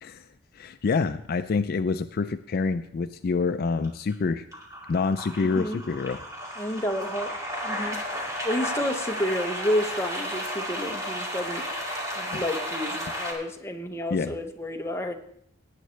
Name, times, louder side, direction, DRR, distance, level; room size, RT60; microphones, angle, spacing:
voice 1, 0.5-4.5 4.9-6.2 12.3-12.4 14.1-14.3, left 4 dB, 50° left, 10 dB, 0.3 m, -27 dB
sound 1, 3.8-4.1 4.5-13.3, equal, 15° right, 2.2 m, -33 dB
voice 2, 5.4-5.8 6.6-7.3 7.6-8.0 8.4-11.7 12.2-15.1, left 1 dB, 15° left, 3 dB, 0.8 m, -30 dB
17.5 x 9.2 x 3.2 m, 0.69 s
head